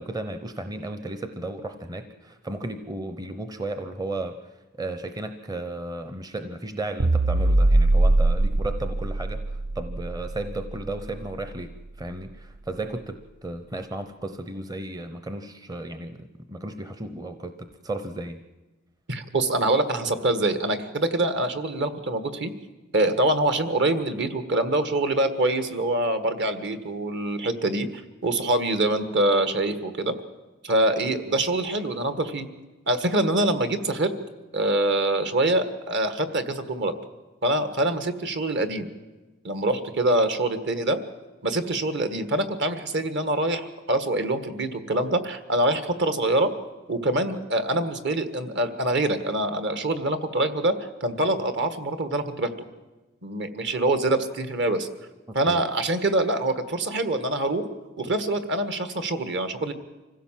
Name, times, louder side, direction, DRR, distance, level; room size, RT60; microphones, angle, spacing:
voice 1, 0.0-4.4 4.8-18.4 55.3-55.6, right 2 dB, 20° right, 9 dB, 0.8 m, -34 dB
sound 1, 7.0-11.5, right 2 dB, 75° right, 0.8 m, -22 dB
voice 2, 19.1-22.5 22.9-27.9 28.2-30.2 30.6-32.5 32.9-34.1 34.5-36.9 37.4-38.9 39.4-41.0 41.4-46.5 46.9-50.7 51.0-52.5 53.2-54.9 55.3-57.6 58.0-59.7, right 1 dB, 55° right, 9 dB, 1.7 m, -25 dB
25.0 x 16.0 x 7.5 m, 1.2 s
head